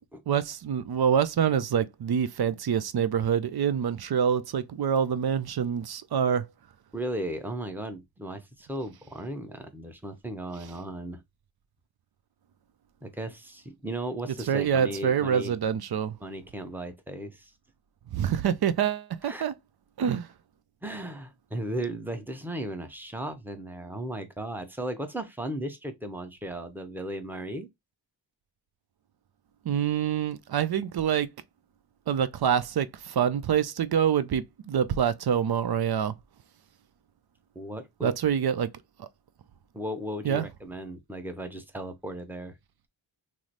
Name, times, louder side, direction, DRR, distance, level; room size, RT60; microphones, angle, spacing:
voice 1, 0.3-6.4 14.5-16.1 18.1-19.5 20.0-20.3 29.7-31.3 32.1-36.1 38.0-38.7 39.0-39.1 40.2-40.5, right 8 dB, 55° right, 0.5 m, -26 dB
voice 2, 6.9-11.2 13.0-15.6 16.2-17.5 19.2-19.5 20.8-27.7 37.5-38.2 39.7-42.5, right 1 dB, 5° right, 0.8 m, -36 dB
3.1 x 2.0 x 3.9 m
cardioid pair, 45°, 46 cm